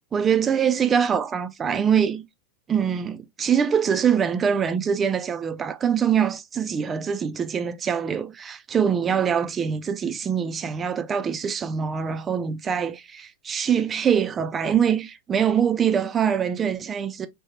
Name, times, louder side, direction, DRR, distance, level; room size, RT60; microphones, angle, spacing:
voice 1, 0.1-2.3 2.7-17.3, right 7 dB, 20° right, 0.4 m, -24 dB
3.7 x 2.2 x 2.7 m
figure-of-eight pair, 90°, 0 cm